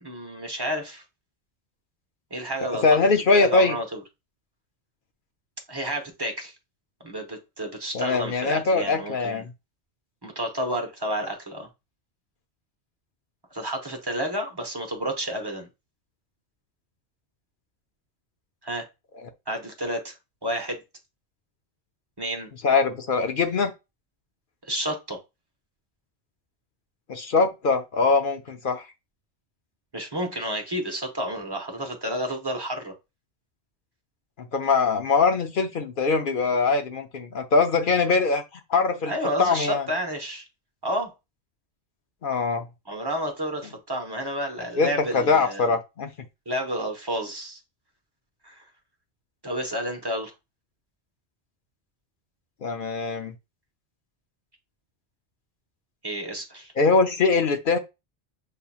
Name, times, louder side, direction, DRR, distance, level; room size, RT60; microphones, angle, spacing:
voice 1, 0.0-1.0 2.3-3.0 3.3-4.0 5.7-6.5 7.0-9.4 10.2-11.7 13.5-15.7 18.6-18.9 19.5-20.2 20.4-20.8 22.2-22.5 24.6-25.2 29.9-32.9 39.1-40.4 40.8-41.1 42.9-45.6 46.5-47.6 48.4-48.6 49.4-50.3 56.0-56.7, equal, 25° right, 0.9 m, -30 dB
voice 2, 2.8-3.8 7.9-9.4 22.6-23.7 27.1-28.8 34.5-38.4 38.7-39.1 39.4-39.9 42.2-42.6 44.8-46.1 52.6-53.3 56.8-57.8, left 4 dB, 55° left, 0.7 m, -22 dB
6.6 x 2.9 x 2.3 m
omnidirectional pair, 1.2 m